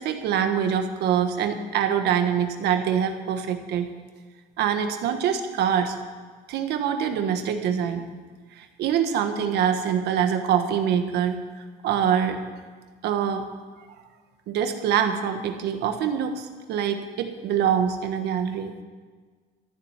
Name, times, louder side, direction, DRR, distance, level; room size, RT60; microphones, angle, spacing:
voice 1, 0.0-3.9 4.6-6.0 6.5-8.0 8.5-11.4 11.8-12.4 13.0-13.4 14.5-18.7, right 8 dB, 80° right, 7 dB, 1.5 m, -24 dB
14.0 x 7.3 x 9.6 m, 1.5 s
cardioid pair, 110°, 17 cm